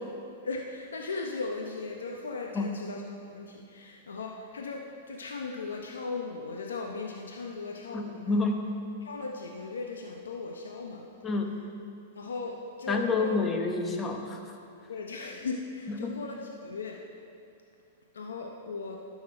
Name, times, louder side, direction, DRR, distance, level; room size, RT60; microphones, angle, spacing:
voice 1, 0.4-8.4 9.0-11.1 12.1-13.3 14.9-17.0 18.1-19.0, left 4 dB, 90° left, 1 dB, 0.7 m, -37 dB
voice 2, 7.9-8.7 11.2-11.6 12.9-14.6 15.9-16.1, left 3 dB, 20° left, 3 dB, 1.0 m, -29 dB
11.5 x 5.8 x 4.4 m, 2.5 s
hypercardioid pair, 120°, 0 cm